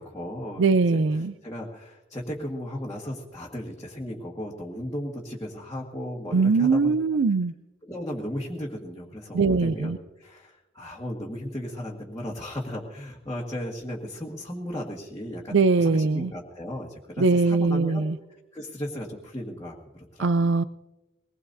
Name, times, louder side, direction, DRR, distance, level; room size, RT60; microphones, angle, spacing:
voice 1, 0.0-0.6 0.9-6.9 7.8-18.1 18.5-20.3, equal, 15° left, -5 dB, 1.7 m, -36 dB
voice 2, 0.6-1.3 6.3-7.5 9.3-10.0 15.5-16.3 17.2-18.2 20.2-20.6, right 4 dB, 70° right, 14 dB, 0.4 m, -21 dB
22.5 x 20.0 x 2.7 m, 1.0 s
head